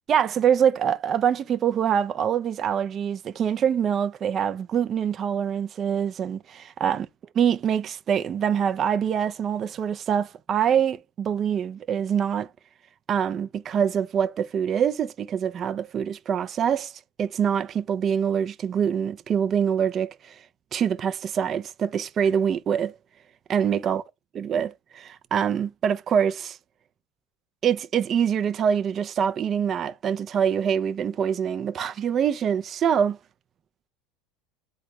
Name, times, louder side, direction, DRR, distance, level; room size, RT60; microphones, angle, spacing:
voice 1, 0.1-7.1 7.4-12.5 13.1-16.9 17.2-20.3 20.7-22.9 23.5-24.0 24.3-26.6 27.6-33.2, right 8 dB, 35° right, 0.5 m, -24 dB
4.0 x 2.4 x 4.6 m
supercardioid pair, 110°, 0 cm